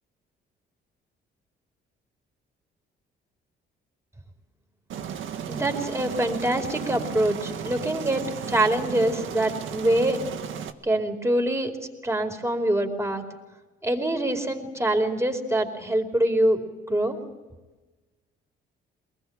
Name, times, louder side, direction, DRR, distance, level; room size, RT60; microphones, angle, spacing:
Aircraft, 4.9-10.7, right 8 dB, 75° right, 1.8 m, -34 dB
voice 1, 5.5-10.2 10.8-11.7 12.0-13.2 13.8-16.6 16.9-17.2, right 1 dB, 15° right, 4 dB, 4.7 m, -24 dB
23.5 x 20.5 x 8.7 m, 1.2 s
cardioid pair, 90°, 20 cm